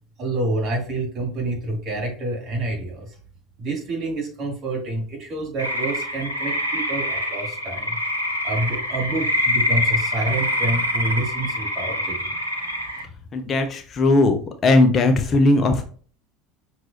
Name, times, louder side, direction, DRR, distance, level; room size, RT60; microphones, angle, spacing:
voice 1, 0.2-3.2 3.6-8.0 8.4-12.3, right 2 dB, 40° right, 0 dB, 2.1 m, -28 dB
sound 1, 5.6-13.0, left 1 dB, 85° right, 0.7 m, -25 dB
voice 2, 13.3-15.9, left 2 dB, 30° left, 6 dB, 0.6 m, -18 dB
5.9 x 3.1 x 2.8 m, 0.42 s
figure-of-eight pair, 70°, 0 cm